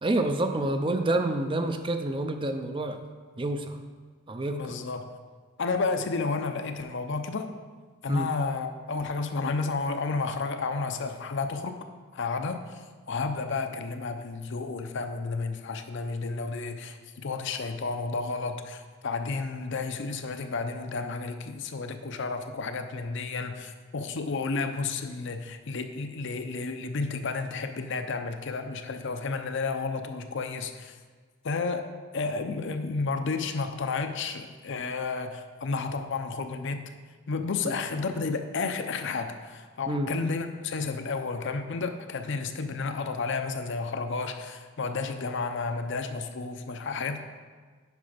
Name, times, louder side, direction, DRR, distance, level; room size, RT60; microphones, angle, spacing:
voice 1, 0.0-3.0 3.4-3.8 4.3-4.7 8.1-8.3 37.6-37.7 39.9-40.1, right 1 dB, 25° right, 7 dB, 0.5 m, -28 dB
voice 2, 4.5-5.1 5.6-7.5 8.0-11.8 12.1-12.6 13.1-17.0 17.2-30.9 31.4-31.9 32.1-36.8 37.3-47.2, left 4 dB, 60° left, 7 dB, 0.6 m, -31 dB
9.6 x 5.1 x 5.1 m, 1.5 s
head